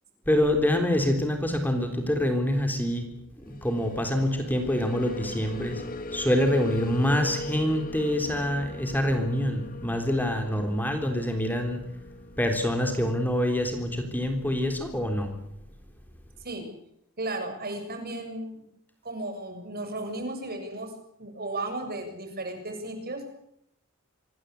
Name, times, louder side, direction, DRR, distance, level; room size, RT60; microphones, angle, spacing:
voice 1, 0.3-3.1 3.5-5.8 6.1-11.8 12.4-15.4, left 1 dB, 10° left, 4 dB, 3.6 m, -26 dB
sound 1, 3.4-12.4, left 1 dB, 40° left, 2.2 m, -40 dB
voice 2, 17.2-18.6 19.0-20.9 21.2-23.3, right 2 dB, 45° right, 6 dB, 7.4 m, -34 dB
26.0 x 21.5 x 8.3 m, 0.76 s
head